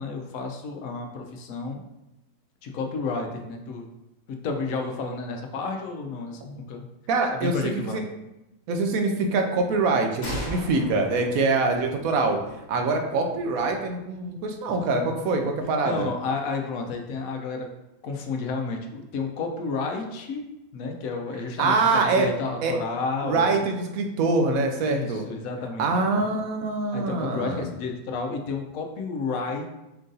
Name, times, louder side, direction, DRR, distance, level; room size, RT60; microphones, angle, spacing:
voice 1, 0.0-1.8 2.6-3.9 4.3-6.9 7.3-8.0 15.8-17.7 18.0-20.4 20.7-23.7 24.8-26.3 26.9-29.7, left 4 dB, 75° left, 3 dB, 1.1 m, -31 dB
voice 2, 7.1-8.0 8.7-12.4 12.7-16.1 21.6-22.3 22.6-22.7 23.2-25.2 25.8-27.7, right 3 dB, 80° right, 4 dB, 1.1 m, -24 dB
sound 1, 10.2-13.7, equal, 35° left, 1.1 m, -38 dB
4.6 x 2.6 x 3.9 m, 0.92 s
omnidirectional pair, 1.5 m